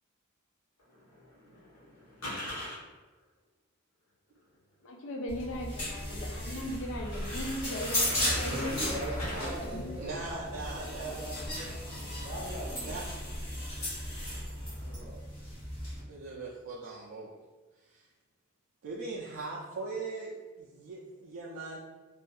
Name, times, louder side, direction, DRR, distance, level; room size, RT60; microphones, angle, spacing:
sound 1, 0.8-2.8 4.4-4.5 5.0-5.1 5.6-5.7 6.0-6.1 6.5-9.5 9.8-13.6 13.9-15.0, left 1 dB, 80° left, 1.0 m, -44 dB
voice 1, 4.8-9.0 9.6-9.9, equal, 65° left, 1 dB, 0.4 m, -38 dB
sound 2, 5.3-16.0, left 1 dB, 35° left, 1.2 m, -36 dB
voice 2, 8.4-11.7 12.2-13.0 14.8-15.1, equal, 25° right, -4 dB, 0.6 m, -40 dB
sound 3, 8.9-9.3 11.9-12.1 12.4-13.3 13.7-15.0, right 2 dB, 5° left, 1.0 m, -49 dB
voice 3, 10.0-11.2 12.8-13.1 16.1-17.4 17.9-18.0 18.8-21.8, right 3 dB, 75° right, -4 dB, 0.4 m, -40 dB
2.6 x 2.4 x 2.3 m, 1.2 s
head